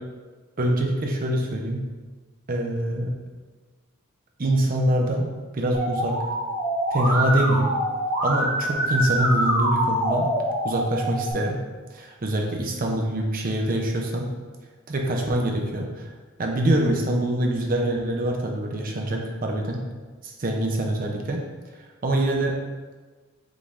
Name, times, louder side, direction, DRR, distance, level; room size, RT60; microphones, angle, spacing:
voice 1, 0.6-1.8 2.5-3.1 4.4-5.3 5.5-6.2 6.9-7.7 8.2-10.3 10.6-11.6 11.9-14.3 14.9-16.1 16.4-19.8 20.2-21.4 22.0-22.5, right 1 dB, 40° right, 1 dB, 0.5 m, -24 dB
Musical instrument, 5.7-11.3, right 1 dB, 60° right, 1.1 m, -25 dB
5.1 x 2.5 x 3.4 m, 1.3 s
head